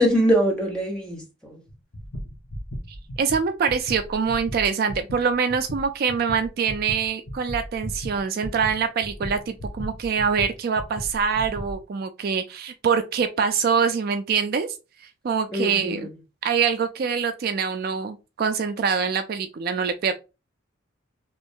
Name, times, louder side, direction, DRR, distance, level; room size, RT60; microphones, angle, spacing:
voice 1, 0.0-1.6 15.5-16.1, equal, 5° left, 1.0 m, -23 dB
sound 1, 1.7-11.8, equal, 80° left, 1.5 m, -36 dB
voice 2, 3.2-14.7 15.0-16.1 16.4-20.1, right 6 dB, 50° right, 0.3 m, -24 dB
3.0 x 2.5 x 3.5 m
head